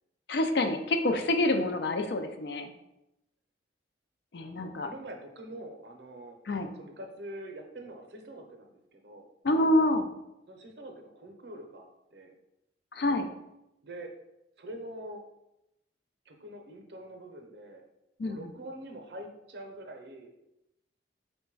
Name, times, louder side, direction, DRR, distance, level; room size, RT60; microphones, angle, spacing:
voice 1, 0.3-2.7 4.3-4.9 6.5-6.7 9.4-10.1 12.9-13.3 18.2-18.4, left 1 dB, 60° left, 6 dB, 0.4 m, -27 dB
voice 2, 4.4-9.3 10.5-11.9 12.1-12.3 13.8-14.1 14.6-15.2 16.3-17.8 18.3-20.3, right 1 dB, 60° right, 4 dB, 0.6 m, -45 dB
3.9 x 2.2 x 4.5 m, 0.88 s
head